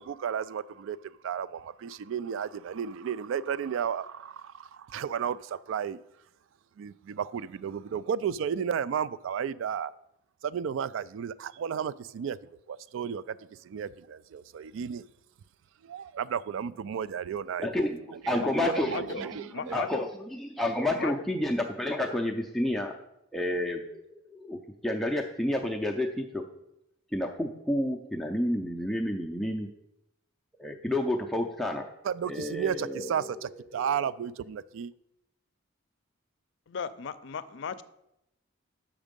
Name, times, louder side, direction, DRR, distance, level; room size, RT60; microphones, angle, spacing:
voice 1, 0.0-6.0 6.8-9.9 10.4-12.4 12.7-15.0 15.8-18.2 18.8-19.8 32.0-34.9, right 8 dB, 70° right, 0.3 m, -33 dB
voice 2, 17.6-19.3 19.6-22.9 23.3-26.4 27.1-29.7 30.6-31.9 32.3-33.4, left 1 dB, ahead, 0.4 m, -30 dB
voice 3, 18.4-19.2 19.5-20.1 21.0-21.1 36.7-37.8, left 6 dB, 60° left, 0.5 m, -36 dB
7.3 x 6.0 x 5.1 m
head